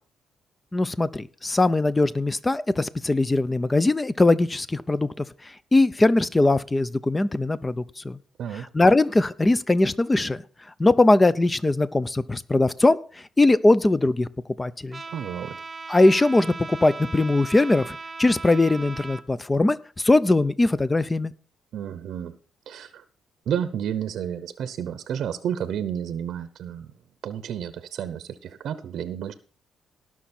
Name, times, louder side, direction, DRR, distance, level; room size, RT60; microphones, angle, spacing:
voice 1, 0.7-5.2 5.7-8.2 8.7-10.4 10.8-13.0 13.4-14.3 14.6-15.0 15.9-21.3, left 2 dB, 20° left, 16 dB, 0.8 m, -21 dB
Trumpet, 14.9-19.2, right 4 dB, 25° right, 1.0 m, -38 dB
voice 2, 15.1-15.6 21.7-22.4 22.7-23.0 23.5-26.9 27.2-29.3, right 9 dB, 70° right, 13 dB, 0.8 m, -31 dB
18.5 x 6.2 x 4.4 m, 0.40 s
cardioid pair, 90°, 0 cm